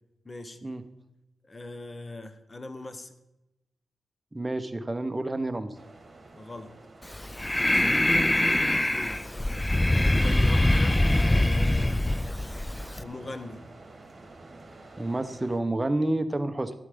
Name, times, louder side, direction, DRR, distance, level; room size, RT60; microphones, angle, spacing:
voice 1, 0.2-0.6 1.4-3.1 6.3-6.7 7.6-9.2 9.8-12.0 13.0-13.6, left 2 dB, 30° left, 11 dB, 1.2 m, -41 dB
voice 2, 4.3-5.8 7.8-8.0 15.0-16.7, right 2 dB, 20° right, 9 dB, 1.0 m, -29 dB
sound 1, 5.7-15.6, right 2 dB, 35° right, 2.6 m, -49 dB
Breathing, 7.0-13.0, left 1 dB, 15° left, 0.5 m, -23 dB
12.5 x 8.3 x 5.1 m, 0.93 s
cardioid pair, 60°, 0 cm